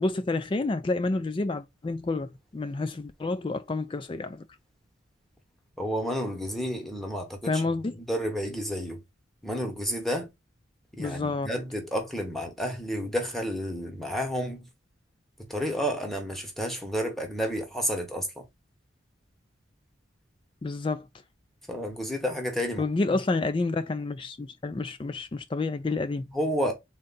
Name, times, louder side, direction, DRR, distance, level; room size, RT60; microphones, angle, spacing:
voice 1, 0.0-4.4 7.4-8.0 11.0-11.5 20.6-21.0 22.8-26.2, left 3 dB, 25° left, 0.3 m, -29 dB
voice 2, 5.8-9.0 9.4-10.3 10.9-14.7 15.4-18.4 21.7-23.2 26.3-26.7, equal, ahead, 0.9 m, -31 dB
3.7 x 2.3 x 3.9 m
head